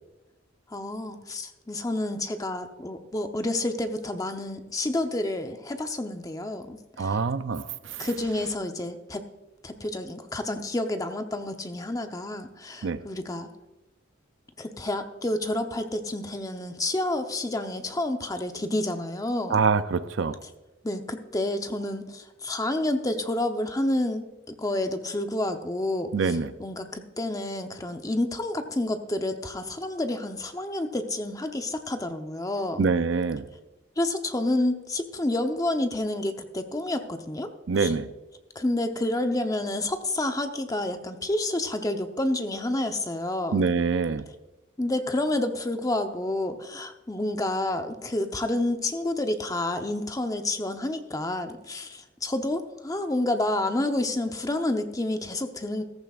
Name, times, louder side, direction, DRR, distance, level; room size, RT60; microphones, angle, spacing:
voice 1, 0.7-7.2 8.0-9.3 9.6-13.5 14.6-19.6 20.8-24.3 24.6-32.9 34.0-37.9 38.5-43.7 44.8-55.8, left 1 dB, 20° left, 6 dB, 0.8 m, -29 dB
voice 2, 7.0-7.6 8.0-8.1 12.8-13.0 19.5-20.3 26.1-26.5 32.8-33.5 37.7-38.1 43.5-44.2, right 4 dB, 65° right, 13 dB, 0.5 m, -25 dB
14.5 x 14.0 x 2.4 m, 1.1 s
head